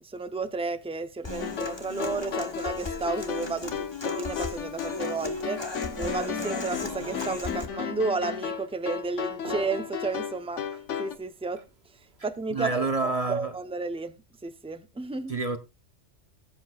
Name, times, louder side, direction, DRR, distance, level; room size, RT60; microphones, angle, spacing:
voice 1, 0.0-5.6 6.0-10.6 11.0-11.6 12.2-14.2 14.4-15.3, right 3 dB, 5° right, 0.5 m, -32 dB
Human voice / Acoustic guitar, 1.2-7.7, left 2 dB, 25° left, 1.2 m, -37 dB
sound 1, 1.4-11.2, left 7 dB, 80° left, 1.3 m, -34 dB
sound 2, 1.4-13.0, right 5 dB, 60° right, 1.7 m, -52 dB
voice 2, 12.5-13.5 15.3-15.6, right 3 dB, 35° right, 0.8 m, -28 dB
20.0 x 8.0 x 2.4 m
omnidirectional pair, 1.2 m